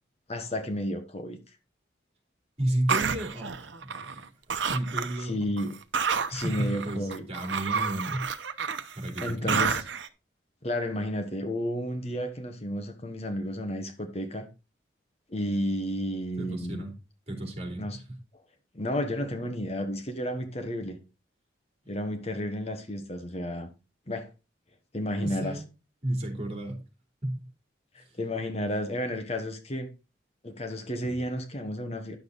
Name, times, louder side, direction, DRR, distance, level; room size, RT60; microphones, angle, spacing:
voice 1, 0.3-1.6 5.2-5.7 6.3-7.3 9.2-9.8 10.6-14.5 15.3-16.8 17.8-18.0 18.7-21.0 21.9-23.7 24.1-24.3 24.9-25.6 27.9-29.9 30.4-32.2, left 1 dB, 35° left, 1.2 m, -32 dB
voice 2, 2.6-4.2 4.7-5.4 6.3-8.3 8.9-9.8 16.4-16.9 17.3-18.0 25.2-25.6 26.0-26.8 27.2-27.5 28.0-28.2, right 1 dB, 35° right, 3.1 m, -32 dB
sound 1, 2.9-4.2 4.5-5.2 5.6-10.1, right 6 dB, 90° right, 0.9 m, -30 dB
10.5 x 6.8 x 4.0 m
head